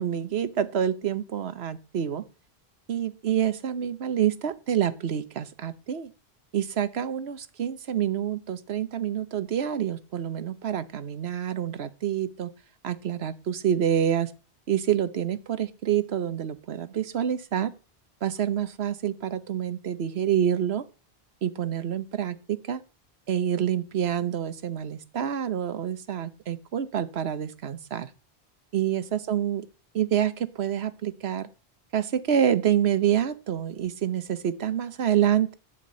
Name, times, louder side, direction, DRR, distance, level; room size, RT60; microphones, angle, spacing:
voice 1, 0.0-2.2 2.9-6.1 6.5-12.5 12.8-14.3 14.7-17.7 18.2-20.9 21.4-22.8 23.3-28.1 28.7-29.7 29.9-31.5 31.9-35.5, right 9 dB, 75° right, 14 dB, 1.2 m, -27 dB
11.0 x 5.9 x 8.5 m, 0.36 s
omnidirectional pair, 1.1 m